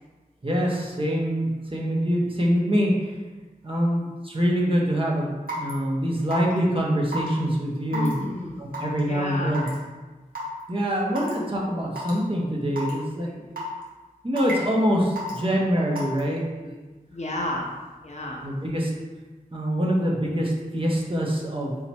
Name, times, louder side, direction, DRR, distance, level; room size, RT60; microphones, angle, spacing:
voice 1, 0.4-2.9 3.6-8.1 8.6-9.7 10.7-13.3 14.2-16.7 18.4-18.9 19.5-21.8, equal, 35° right, -3 dB, 1.0 m, -25 dB
Raindrop / Water tap faucet / Drip, 5.5-5.7 6.3-6.6 7.1-7.3 7.9-8.1 8.7-9.0 9.5-9.7 10.3-10.4 11.1-11.3 12.0-12.1 12.8-12.9 13.6-13.8 14.4-14.7 15.2-15.4 16.0-16.2, right 2 dB, 75° right, 1.2 m, -31 dB
voice 2, 7.9-8.6 9.0-9.6 17.1-17.7 18.0-18.4, left 1 dB, 50° left, -1 dB, 0.8 m, -31 dB
3.8 x 3.0 x 4.2 m, 1.2 s
wide cardioid pair, 55°, 15 cm